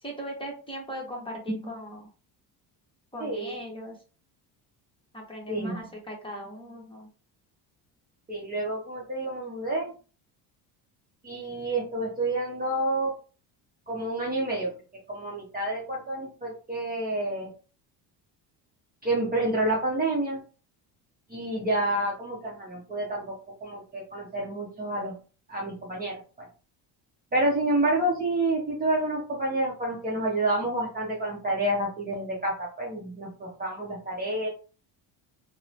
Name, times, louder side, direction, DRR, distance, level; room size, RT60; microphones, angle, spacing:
voice 1, 0.0-2.1 3.1-4.0 5.1-7.1, equal, 10° left, -1 dB, 1.0 m, -39 dB
voice 2, 3.2-3.6 5.5-5.8 8.3-9.9 11.2-13.1 13.9-14.7 15.1-17.5 19.0-20.4 21.3-23.4 23.6-25.1 25.5-26.5 27.3-34.5, right 1 dB, 20° right, -3 dB, 0.7 m, -29 dB
2.9 x 2.1 x 2.5 m, 0.37 s
cardioid pair, 100°, 46 cm